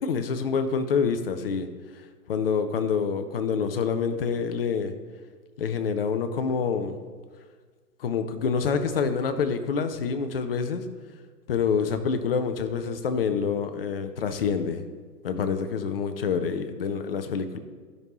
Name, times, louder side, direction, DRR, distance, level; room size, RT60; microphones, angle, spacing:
voice 1, 0.0-1.7 2.3-4.9 5.6-7.0 8.0-10.8 11.5-14.8 15.2-17.6, left 6 dB, 35° left, 8 dB, 0.6 m, -27 dB
12.5 x 5.4 x 3.1 m, 1.5 s
hypercardioid pair, 135°, 50 cm